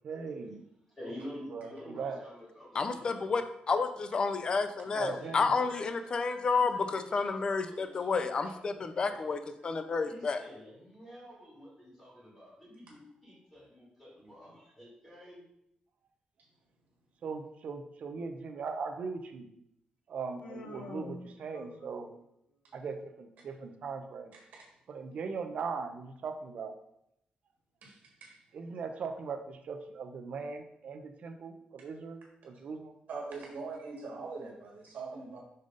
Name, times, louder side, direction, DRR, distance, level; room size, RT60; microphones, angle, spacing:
voice 1, 0.0-0.6 1.5-2.2 4.9-5.5 17.2-19.5 20.1-22.1 22.7-24.3 24.9-26.7 28.5-32.9, right 5 dB, 55° right, 6 dB, 0.6 m, -39 dB
voice 2, 1.0-3.4 4.8-5.9 6.5-9.1 9.4-9.5 10.1-15.4, left 1 dB, 15° left, -7 dB, 2.3 m, -49 dB
voice 3, 2.7-10.4, left 4 dB, 35° left, 9 dB, 0.5 m, -30 dB
Human voice, 20.4-22.1, left 3 dB, 75° left, 1.1 m, -46 dB
voice 4, 33.1-35.4, right 4 dB, 80° right, -1 dB, 1.5 m, -41 dB
5.5 x 3.8 x 5.1 m, 0.78 s
wide cardioid pair, 180°, 3 cm